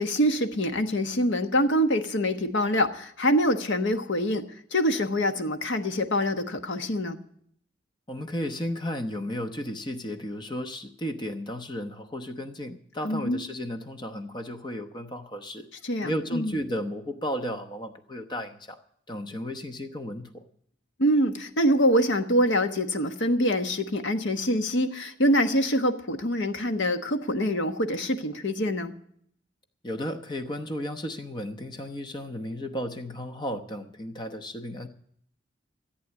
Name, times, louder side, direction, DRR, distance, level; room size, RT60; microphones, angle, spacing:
voice 1, 0.0-7.2 13.0-13.4 15.8-16.6 21.0-28.9, equal, 75° left, 8 dB, 1.3 m, -25 dB
voice 2, 8.1-15.7 16.0-18.8 19.1-20.4 29.8-34.9, equal, 25° left, 7 dB, 0.9 m, -34 dB
14.5 x 8.4 x 8.2 m, 0.65 s
head